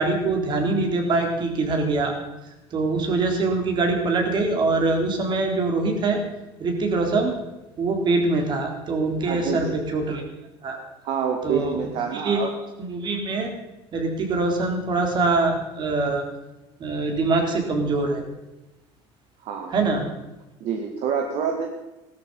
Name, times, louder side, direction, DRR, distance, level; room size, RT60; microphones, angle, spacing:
voice 1, 0.0-2.2 2.7-6.2 6.6-7.4 7.8-10.2 10.6-10.8 11.4-11.8 12.1-12.4 12.8-13.5 13.9-16.2 16.8-18.2 19.7-20.1, right 3 dB, 40° right, 3 dB, 3.7 m, -23 dB
voice 2, 9.2-9.8 11.0-12.5 19.4-19.7 20.6-21.7, right 7 dB, 55° right, 3 dB, 2.0 m, -27 dB
17.0 x 13.5 x 5.6 m, 1.0 s
cardioid pair, 130°, 12 cm